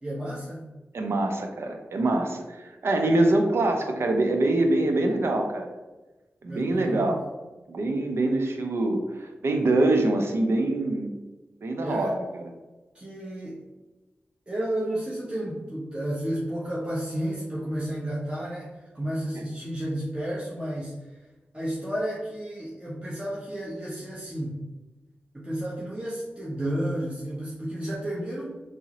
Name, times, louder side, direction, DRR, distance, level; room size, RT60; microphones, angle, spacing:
voice 1, 0.0-0.7 6.5-7.2 11.8-12.1 12.9-13.6 14.5-21.0 21.5-24.6 25.3-28.6, right 1 dB, 25° right, -7 dB, 0.8 m, -32 dB
voice 2, 0.9-5.7 6.4-7.2 7.7-11.1 11.6-12.5, right 2 dB, 70° right, 4 dB, 0.5 m, -24 dB
3.6 x 2.0 x 2.8 m, 1.1 s
cardioid pair, 40°, 4 cm